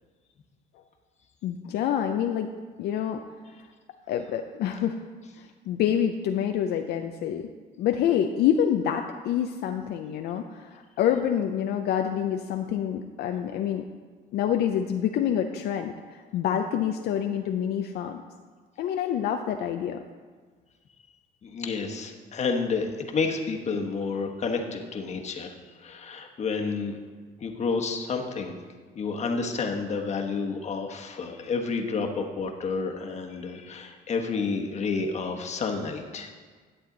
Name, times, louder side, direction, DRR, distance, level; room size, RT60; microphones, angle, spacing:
voice 1, 1.4-2.5 2.8-3.2 4.1-5.0 5.4-7.5 7.8-13.8 14.3-18.2 18.8-20.0, left 9 dB, 70° left, 5 dB, 0.5 m, -27 dB
voice 2, 21.4-26.9 27.4-28.5 28.9-36.3, left 4 dB, 40° left, 3 dB, 1.2 m, -30 dB
11.0 x 7.8 x 3.9 m, 1.5 s
cardioid pair, 110°, 17 cm